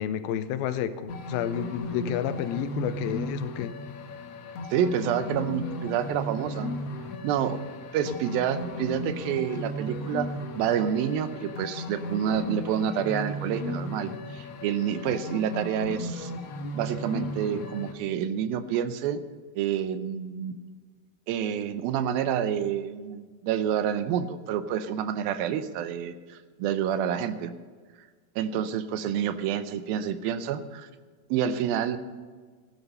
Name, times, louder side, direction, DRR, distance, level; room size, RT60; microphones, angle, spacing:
voice 1, 0.0-3.7, left 10 dB, 90° left, 11 dB, 2.5 m, -30 dB
sound 1, 1.1-17.9, left 1 dB, 60° left, 1.7 m, -36 dB
voice 2, 4.7-6.7 7.2-7.6 7.9-16.3 16.7-19.2 19.6-20.6 21.3-27.5 28.4-30.9 31.3-32.0, right 9 dB, 80° right, 11 dB, 2.5 m, -28 dB
16.5 x 11.0 x 5.5 m, 1.5 s
omnidirectional pair, 4.3 m